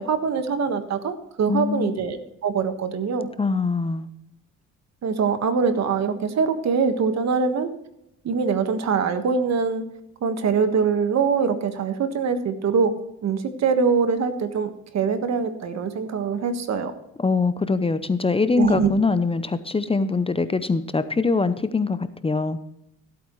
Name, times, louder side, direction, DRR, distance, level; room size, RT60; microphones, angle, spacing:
voice 1, 0.0-3.3 5.0-7.7 8.2-9.8 10.2-12.9 13.2-17.0 18.6-19.0, right 5 dB, 60° right, 8 dB, 1.5 m, -23 dB
voice 2, 1.5-2.0 3.4-4.1 17.2-22.6, left 4 dB, 20° left, 12 dB, 0.6 m, -23 dB
15.5 x 8.6 x 3.1 m, 0.81 s
cardioid pair, 90°, 30 cm